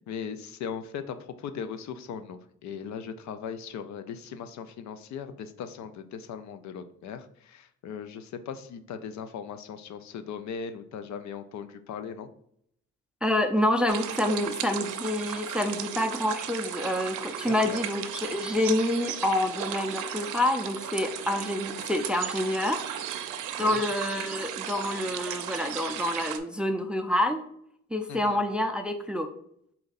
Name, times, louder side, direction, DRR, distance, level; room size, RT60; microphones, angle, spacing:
voice 1, 0.0-12.3 17.5-17.8 23.6-23.8 28.1-28.4, left 7 dB, 70° left, 10 dB, 0.5 m, -38 dB
voice 2, 13.2-22.9 23.6-27.4 27.9-29.3, left 1 dB, 5° right, 7 dB, 0.3 m, -27 dB
sound 1, 13.9-26.4, right 9 dB, 85° right, 0.5 m, -35 dB
4.3 x 2.7 x 3.9 m, 0.69 s
cardioid pair, 90°, 30 cm